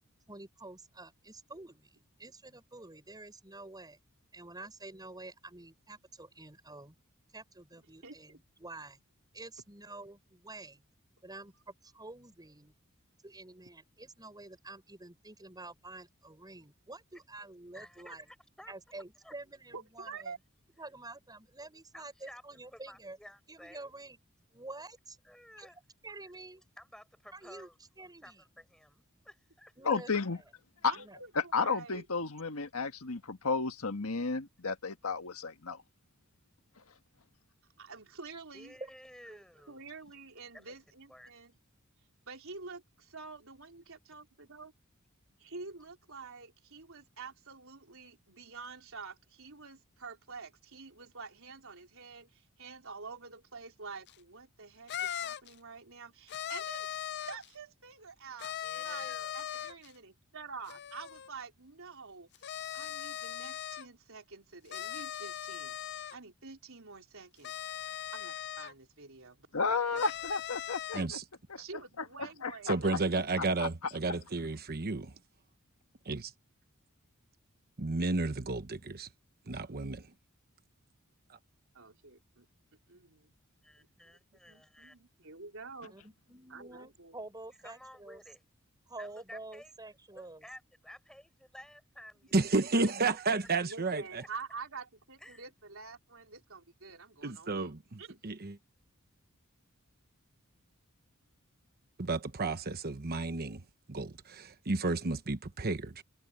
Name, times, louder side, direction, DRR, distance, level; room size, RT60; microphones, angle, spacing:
voice 1, 0.3-4.0 4.3-7.0 7.3-9.0 9.3-10.8 11.2-12.7 13.2-18.3 18.7-20.3 20.8-23.2 23.5-24.2 24.5-25.2 25.6-25.7 26.0-26.6 27.3-27.7 28.0-28.4 29.8-30.4 31.0-31.2 39.3-39.4 85.9-88.2 88.9-90.4, right 2 dB, 20° right, 6.9 m, -48 dB
voice 2, 17.7-18.7 19.2-19.3 20.1-20.2 20.7-20.8 21.9-22.4 22.7-23.9 25.2-25.8 26.8-27.8 28.2-30.0 31.6-31.8 38.5-39.9 40.5-40.7 41.1-41.3 58.6-59.6 83.6-85.0 87.6-88.4 89.0-89.7 90.1-92.4 92.7-93.2 94.2-94.3 95.2-95.5, equal, 5° left, 4.9 m, -53 dB
voice 3, 19.7-20.4 30.8-32.1 37.8-38.8 39.7-41.5 42.3-44.7 45.4-67.5 68.1-70.0 71.6-73.1 81.7-82.4 82.9-83.3 83.8-86.0 86.5-87.2 93.6-98.2, right 4 dB, 70° right, 4.3 m, -48 dB
voice 4, 29.9-30.4 31.5-35.8 69.5-71.2 71.5-71.6 72.4-72.7 73.6-73.7, left 4 dB, 75° left, 1.7 m, -33 dB
sound 1, 54.1-54.2 54.9-55.5 56.3-57.5 58.4-59.9 60.7-61.3 62.3-63.9 64.7-66.2 67.4-68.7 69.9-71.1, left 11 dB, 50° left, 0.5 m, -39 dB
voice 5, 70.9-71.2 72.7-75.1 76.1-76.3 77.8-79.1 79.5-80.1 81.3-81.4 92.3-94.2 97.2-98.6 102.0-103.6 103.9-106.0, right 3 dB, 45° right, 1.0 m, -32 dB
head